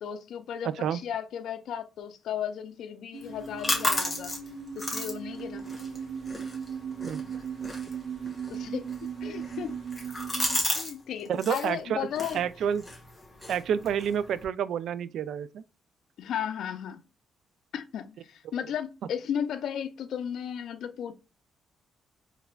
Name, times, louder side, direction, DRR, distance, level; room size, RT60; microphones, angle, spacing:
voice 1, 0.0-4.3 4.7-5.7 8.5-8.9 9.2-9.8 10.7-12.4 16.2-17.0 17.7-21.1, left 9 dB, 75° left, 0.5 m, -35 dB
sound 1, 3.1-10.6, right 7 dB, 50° right, 0.9 m, -37 dB
sound 2, 3.2-10.9 11.2-11.7 12.1-14.4, left 1 dB, 5° left, 1.5 m, -34 dB
voice 2, 11.3-12.1 12.3-12.8 13.5-15.6, right 8 dB, 70° right, 0.3 m, -29 dB
4.6 x 3.3 x 2.3 m
cardioid pair, 115°, 0 cm